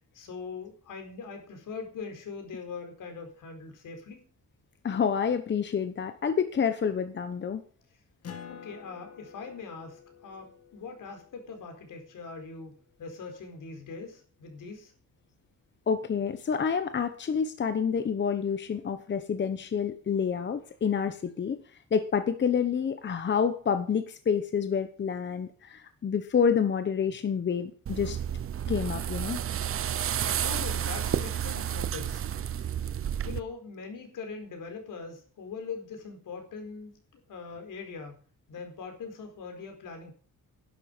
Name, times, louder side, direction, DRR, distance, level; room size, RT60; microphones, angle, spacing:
voice 1, 0.1-4.2 8.5-14.9 30.4-32.2 33.2-38.2 38.5-40.1, left 5 dB, 75° left, 5 dB, 4.5 m, -41 dB
voice 2, 4.8-7.6 15.9-21.6 21.9-28.2 28.7-29.4, left 7 dB, 35° left, 10 dB, 1.0 m, -28 dB
Acoustic guitar, 8.2-13.2, left 7 dB, 50° left, 2.4 m, -49 dB
sound 1, 27.9-33.4, right 9 dB, 45° right, 0.7 m, -31 dB
11.5 x 11.0 x 5.3 m, 0.43 s
wide cardioid pair, 155°, 32 cm